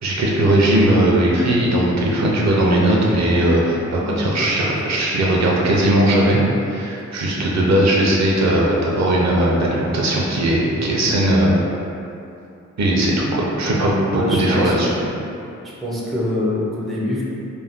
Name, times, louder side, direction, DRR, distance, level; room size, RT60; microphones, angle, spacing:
voice 1, 0.0-6.4 6.7-11.5 12.8-14.9, right 1 dB, 60° right, -4 dB, 0.6 m, -18 dB
voice 2, 3.9-4.3 14.1-14.7 15.6-17.2, left 1 dB, ahead, -6 dB, 0.4 m, -24 dB
2.5 x 2.2 x 3.5 m, 2.7 s
wide cardioid pair, 115°, 30 cm